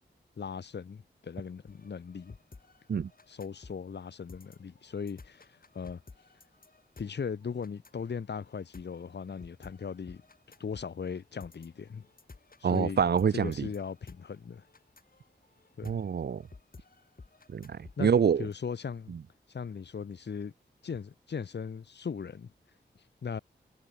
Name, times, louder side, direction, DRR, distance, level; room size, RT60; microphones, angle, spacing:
voice 1, 0.4-2.4 3.3-6.0 7.0-10.2 10.6-12.1 12.6-13.0 13.3-14.7 15.8-16.0 18.0-18.1 18.4-19.2 19.5-20.5 20.8-22.5 23.2-23.4, left 6 dB, 65° left, 1.1 m, -38 dB
sound 1, 1.7-18.5, left 3 dB, 50° left, 5.6 m, -54 dB
voice 2, 12.6-13.7 15.8-16.4 17.5-18.5 19.1-19.2, right 7 dB, 60° right, 0.6 m, -26 dB
cardioid pair, 55°, 19 cm